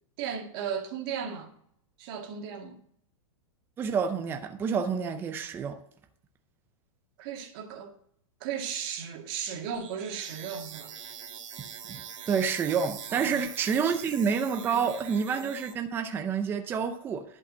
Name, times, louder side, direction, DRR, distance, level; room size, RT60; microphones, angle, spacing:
voice 1, 0.2-1.5 2.0-2.8 7.2-7.9 8.4-11.1 13.1-13.4 13.9-14.0 14.5-14.8, right 7 dB, 40° right, 2.0 m, -36 dB
voice 2, 3.8-5.8 11.9-12.0 12.3-17.2, right 6 dB, 10° right, 0.6 m, -28 dB
sound 1, 9.7-15.7, right 8 dB, 70° right, 2.2 m, -43 dB
11.0 x 5.4 x 7.3 m
supercardioid pair, 160°, 17 cm